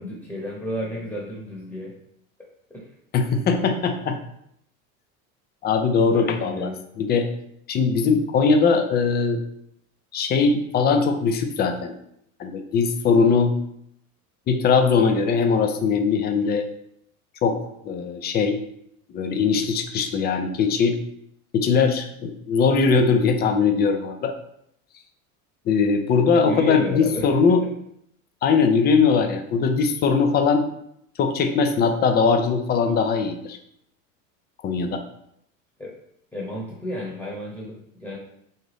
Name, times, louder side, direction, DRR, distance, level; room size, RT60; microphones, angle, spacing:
voice 1, 0.0-2.0 2.7-2.8 6.1-6.8 26.4-27.7 35.8-35.9 36.3-38.2, left 1 dB, 5° left, -3 dB, 1.0 m, -32 dB
voice 2, 3.1-4.2 5.6-6.7 7.0-7.3 7.7-9.4 10.1-11.9 12.4-13.5 14.5-16.6 17.4-18.6 19.1-21.0 21.5-24.3 25.7-27.6 28.4-30.7 31.2-33.6 34.6-35.0, left 5 dB, 25° left, 7 dB, 0.4 m, -20 dB
4.0 x 2.5 x 3.3 m, 0.74 s
hypercardioid pair, 85°, 44 cm